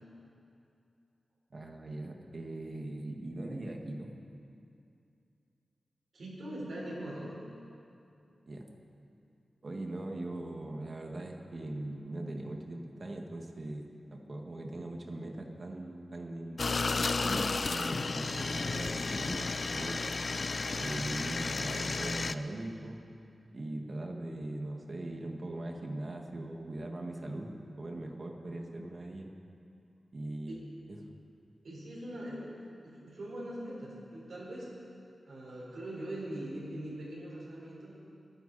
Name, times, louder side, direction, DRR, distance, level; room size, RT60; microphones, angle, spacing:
voice 1, 1.5-4.1 8.5-8.7 9.6-16.7 17.2-20.1 20.8-23.0 23.5-27.5 27.8-29.3 30.1-30.6 30.9-31.0, right 1 dB, 50° right, 2 dB, 1.9 m, -40 dB
voice 2, 6.1-7.4 30.5-30.6 31.6-34.7 35.3-37.9, right 1 dB, 80° right, -6 dB, 4.6 m, -41 dB
sound 1, 16.6-22.3, left 3 dB, 55° left, 0.4 m, -33 dB
23.5 x 11.0 x 4.3 m, 2.6 s
cardioid pair, 65°, 0 cm